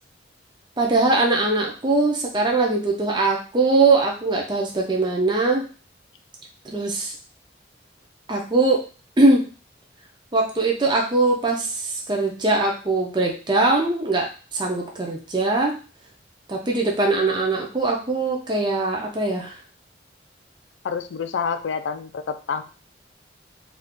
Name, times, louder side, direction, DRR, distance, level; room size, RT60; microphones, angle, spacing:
voice 1, 0.8-5.6 6.6-7.1 8.3-8.8 9.2-9.5 10.3-14.3 14.5-15.8 16.5-19.6, right 2 dB, 25° right, 0 dB, 0.5 m, -21 dB
voice 2, 20.8-22.6, left 6 dB, 80° left, 8 dB, 0.4 m, -28 dB
2.5 x 2.4 x 3.6 m, 0.35 s
head